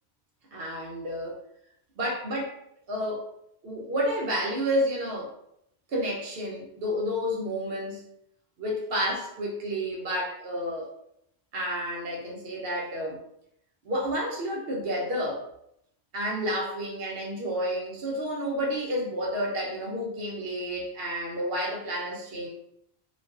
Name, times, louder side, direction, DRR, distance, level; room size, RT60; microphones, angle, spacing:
voice 1, 0.5-1.4 2.0-2.6 2.9-3.3 3.6-5.3 5.9-8.0 8.6-10.9 11.5-13.2 13.8-15.5 16.1-22.5, equal, 70° right, -2 dB, 0.9 m, -30 dB
2.4 x 2.3 x 2.3 m, 0.74 s
omnidirectional pair, 1.1 m